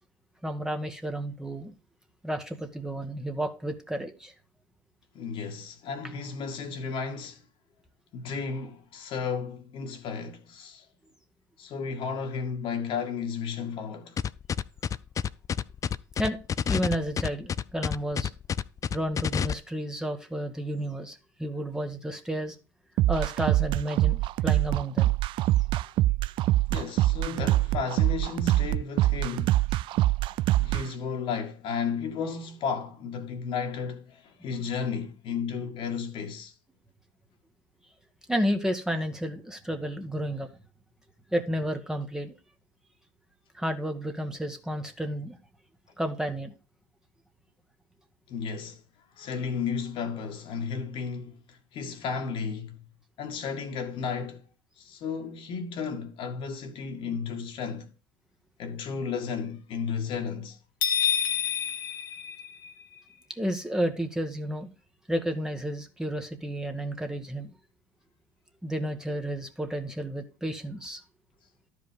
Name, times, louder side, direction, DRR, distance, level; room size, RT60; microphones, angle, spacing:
voice 1, 0.4-1.7 2.2-4.3 16.2-16.4 16.7-18.3 18.9-22.5 23.1-25.1 38.3-40.5 41.3-42.3 43.5-45.4 46.0-46.5 63.3-64.7 65.1-67.5 68.6-71.0, equal, 5° right, 1.4 m, -31 dB
voice 2, 5.1-7.4 8.1-10.9 11.6-14.2 26.7-29.6 30.6-36.5 48.3-48.8 49.2-52.8 53.2-54.4 54.8-57.9 58.6-60.6, left 6 dB, 55° left, 1.9 m, -33 dB
sound 1, 14.2-19.5, left 8 dB, 30° left, 0.5 m, -28 dB
sound 2, 23.0-30.8, right 16 dB, 50° right, 0.4 m, -24 dB
sound 3, 60.8-63.0, left 9 dB, 85° left, 1.5 m, -28 dB
12.0 x 5.1 x 5.3 m
hypercardioid pair, 75°, 11 cm